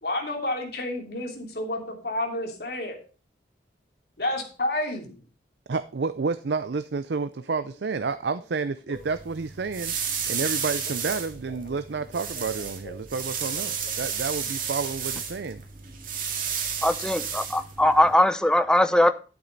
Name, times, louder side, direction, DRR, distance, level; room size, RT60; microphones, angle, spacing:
voice 1, 0.0-3.0 4.2-5.2 11.1-11.2 11.5-11.7 12.1-12.9 13.5-13.9, left 1 dB, 60° left, 2 dB, 3.1 m, -31 dB
voice 2, 5.7-9.9 10.3-15.6, right 4 dB, 75° right, 12 dB, 0.5 m, -30 dB
sound 1, 8.9-18.1, right 7 dB, 50° right, 2.2 m, -32 dB
voice 3, 16.8-19.1, left 1 dB, 5° left, 11 dB, 0.6 m, -20 dB
11.5 x 8.8 x 4.0 m, 0.35 s
head